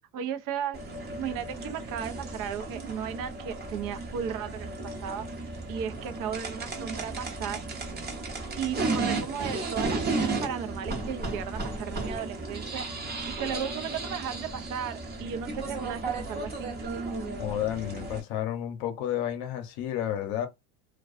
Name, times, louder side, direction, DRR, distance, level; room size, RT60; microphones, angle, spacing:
voice 1, 0.1-0.8 1.2-5.3 5.7-7.6 8.6-12.8 13.3-16.7, right 8 dB, 55° right, 0.6 m, -35 dB
sound 1, 0.7-18.2, right 3 dB, 25° right, 0.8 m, -34 dB
voice 2, 17.4-20.5, left 11 dB, 55° left, 0.7 m, -31 dB
2.3 x 2.3 x 2.4 m
supercardioid pair, 100°, 41 cm